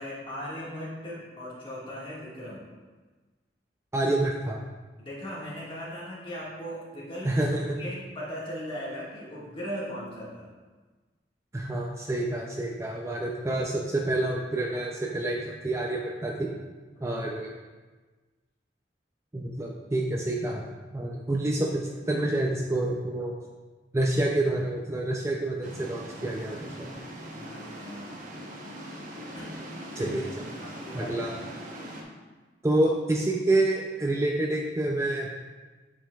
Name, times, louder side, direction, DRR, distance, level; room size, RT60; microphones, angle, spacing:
voice 1, 0.0-2.6 5.0-7.4 7.7-10.5 17.0-17.2 27.3-28.1 29.3-29.6 29.9-30.2 30.6-31.2, equal, 30° left, -6 dB, 1.8 m, -38 dB
voice 2, 3.9-4.6 7.2-7.9 11.5-16.5 17.0-17.5 19.3-20.6 20.9-23.4 23.9-26.9 30.0-30.2 30.9-31.4 32.6-35.4, right 1 dB, 15° right, -1 dB, 0.4 m, -28 dB
sound 1, 25.6-32.0, equal, 50° right, 0.9 m, -41 dB
8.9 x 5.1 x 2.3 m, 1.3 s
head